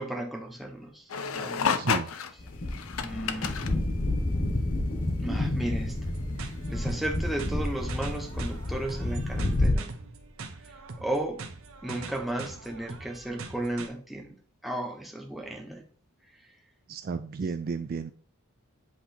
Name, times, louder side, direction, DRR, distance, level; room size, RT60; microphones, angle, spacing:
voice 1, 0.0-1.8 3.0-3.8 5.2-6.1 6.4-9.9 11.0-11.4 11.8-14.4 14.6-15.8, right 1 dB, ahead, 0.8 m, -34 dB
sound 1, 1.1-3.8 5.8-6.0 7.3-7.4, left 6 dB, 65° left, 0.5 m, -31 dB
voice 2, 1.8-2.1 16.9-18.1, right 5 dB, 40° right, 0.3 m, -32 dB
sound 2, 2.4-9.7, left 1 dB, 35° left, 1.0 m, -29 dB
sound 3, 5.9-13.9, right 3 dB, 60° right, 0.8 m, -43 dB
7.9 x 2.9 x 4.2 m
head